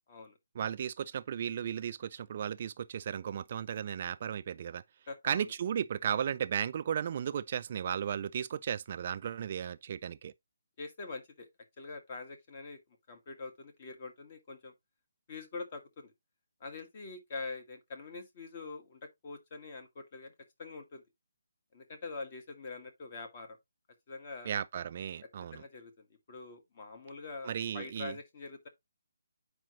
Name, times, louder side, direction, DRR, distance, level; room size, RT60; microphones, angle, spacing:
voice 1, 0.6-4.8 5.2-10.3 24.5-25.6 27.4-28.1, right 8 dB, 35° right, 0.3 m, -35 dB
voice 2, 5.1-5.5 10.8-11.5 11.8-12.8 13.1-14.7 15.3-16.1 16.6-20.3 20.6-21.0 21.7-23.6 24.1-24.5 25.5-28.7, left 3 dB, 35° left, 1.6 m, -44 dB
8.8 x 4.9 x 3.0 m
hypercardioid pair, 170°, 0 cm